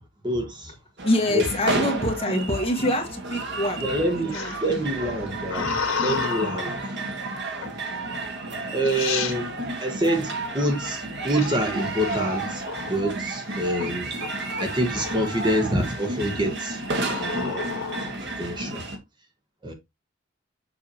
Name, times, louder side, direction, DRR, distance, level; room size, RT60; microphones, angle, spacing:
voice 1, 0.2-0.7 1.3-1.8 3.8-4.3 4.6-6.8 7.5-7.7 8.7-14.1 14.6-16.8 17.2-17.7 18.2-18.9 19.6-19.7, right 1 dB, 20° right, 1.2 m, -27 dB
voice 2, 1.0-3.8 4.1-4.8, left 1 dB, 30° left, 1.6 m, -25 dB
sound 1, 1.0-19.0, right 2 dB, 60° right, 1.6 m, -31 dB
sound 2, 4.3-6.8 7.6-8.0 8.6-8.7 8.8-9.4 11.4-13.0 13.5-13.9 14.2-15.4 15.9-16.3 17.1-18.1, left 6 dB, 80° left, 1.5 m, -32 dB
7.2 x 5.6 x 2.9 m
head